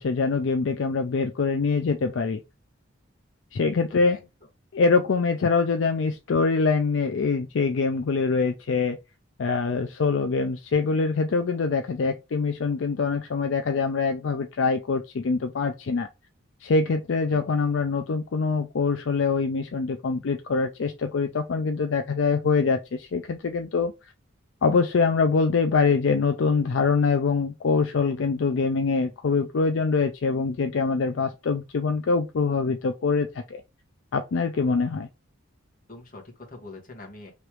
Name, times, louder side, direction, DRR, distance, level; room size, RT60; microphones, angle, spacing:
voice 1, 0.0-2.4 3.5-4.2 4.7-9.0 9.4-16.1 16.6-24.1 24.6-33.6 34.1-35.1, left 4 dB, 65° left, 0.4 m, -24 dB
voice 2, 3.9-4.3 17.3-17.6 35.9-37.3, left 2 dB, 40° left, 1.3 m, -44 dB
3.2 x 3.0 x 4.5 m
head